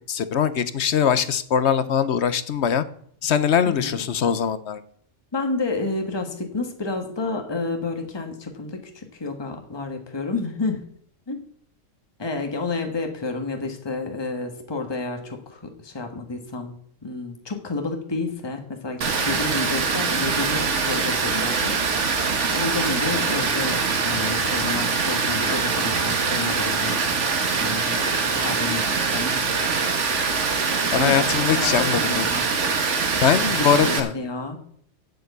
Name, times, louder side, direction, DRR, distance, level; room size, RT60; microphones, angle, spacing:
voice 1, 0.1-2.8 3.2-4.8 30.9-32.3 33.2-34.1, left 8 dB, 60° left, 14 dB, 1.0 m, -21 dB
voice 2, 5.3-10.8 11.3-11.4 12.2-16.8 17.0-21.8 22.0-27.0 27.6-28.0 28.4-29.4 31.0-32.4 33.5-34.6, left 3 dB, 20° left, 4 dB, 1.4 m, -30 dB
Water, 19.0-34.0, right 5 dB, 65° right, 1.5 m, -23 dB
7.9 x 7.8 x 8.2 m, 0.64 s
omnidirectional pair, 1.3 m